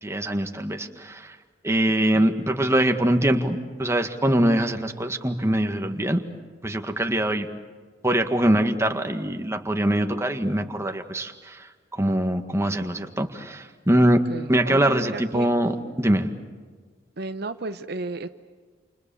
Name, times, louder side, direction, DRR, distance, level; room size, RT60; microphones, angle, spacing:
voice 1, 0.0-1.3 1.6-6.2 6.6-7.5 8.0-14.2 14.5-15.7 16.0-16.3, right 1 dB, 15° right, 5 dB, 1.8 m, -23 dB
voice 2, 14.3-15.5 17.2-18.3, right 2 dB, 60° right, 9 dB, 1.0 m, -33 dB
29.0 x 28.0 x 7.1 m, 1.5 s
head